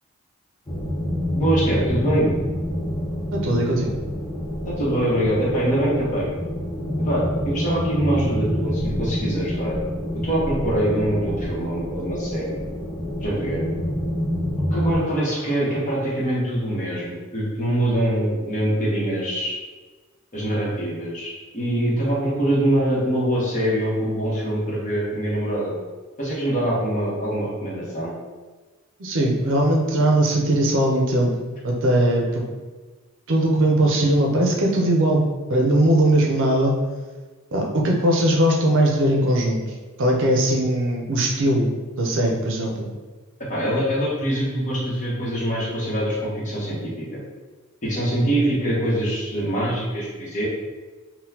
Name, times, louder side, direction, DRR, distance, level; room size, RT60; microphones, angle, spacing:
sound 1, 0.7-15.0, equal, 15° left, 0.4 m, -27 dB
voice 1, 1.3-2.3 4.7-6.3 7.0-9.8 10.1-12.6 13.2-13.6 14.7-19.6 20.3-25.7 26.2-28.1 43.5-47.2 47.8-50.5, right 1 dB, 35° left, -6 dB, 0.9 m, -24 dB
voice 2, 3.4-3.9 29.0-31.3 31.6-32.4 33.3-35.2 35.5-36.7 37.5-39.6 40.0-41.7 42.0-42.9, right 1 dB, 60° right, 0 dB, 0.6 m, -19 dB
3.8 x 2.2 x 2.8 m, 1.3 s
head